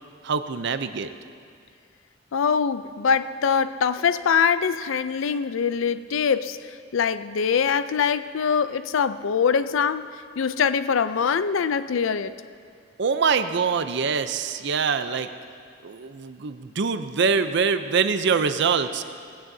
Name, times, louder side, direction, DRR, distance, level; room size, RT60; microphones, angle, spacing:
voice 1, 0.2-1.1 13.0-15.3 15.8-19.0, right 5 dB, 60° right, 10 dB, 0.6 m, -24 dB
voice 2, 2.3-10.1 10.4-12.3, left 6 dB, 85° left, 13 dB, 0.4 m, -23 dB
18.0 x 16.0 x 2.7 m, 2.2 s
head